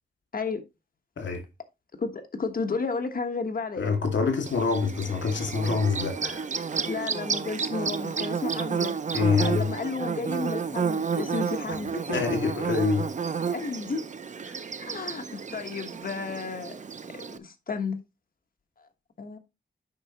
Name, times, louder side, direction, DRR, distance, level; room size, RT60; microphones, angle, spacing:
voice 1, 2.0-3.9 6.8-12.2 13.5-14.0 14.8-15.3 15.5-16.8 17.1-18.0 19.2-19.4, left 4 dB, 50° left, 1.3 m, -32 dB
voice 2, 3.8-6.5 9.1-9.7 12.1-13.1 14.5-14.6, left 5 dB, 85° left, 2.1 m, -26 dB
Bird / Buzz, 4.5-17.4, right 6 dB, 40° right, 0.6 m, -31 dB
8.7 x 5.6 x 2.9 m
wide cardioid pair, 120°, 19 cm